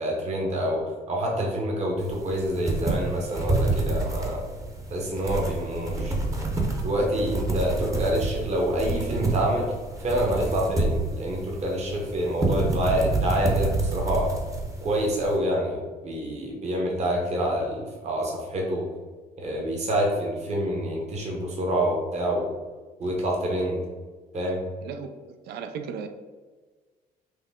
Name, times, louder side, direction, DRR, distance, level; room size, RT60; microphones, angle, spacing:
voice 1, 0.0-4.4 4.9-6.2 6.8-9.7 10.0-14.3 14.8-18.9 19.4-22.6 23.0-23.8 24.3-24.6, equal, 40° right, -1 dB, 1.0 m, -27 dB
sound 1, 2.0-15.4, right 2 dB, 20° right, 0.8 m, -28 dB
voice 2, 24.8-26.1, right 6 dB, 75° right, 7 dB, 0.5 m, -36 dB
5.9 x 2.2 x 3.6 m, 1.4 s
cardioid pair, 110°, 17 cm